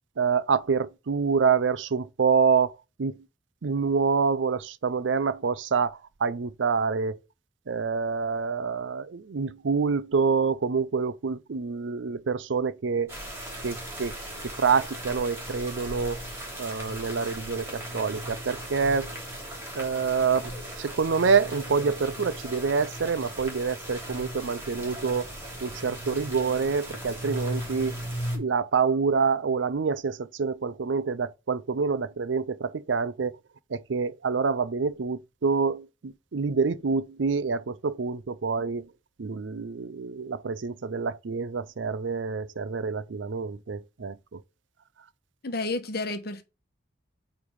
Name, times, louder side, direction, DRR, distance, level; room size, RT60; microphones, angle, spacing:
voice 1, 0.2-3.2 3.6-7.2 7.7-13.1 13.6-14.1 14.6-16.2 16.6-19.1 19.7-20.5 20.8-25.3 25.6-27.9 28.3-33.3 33.7-38.9 39.2-44.4, right 5 dB, 85° right, 0.5 m, -27 dB
sound 1, 13.1-28.4, right 1 dB, 15° right, 3.2 m, -37 dB
voice 2, 45.4-46.4, left 2 dB, 60° left, 1.1 m, -31 dB
8.6 x 3.5 x 4.7 m
head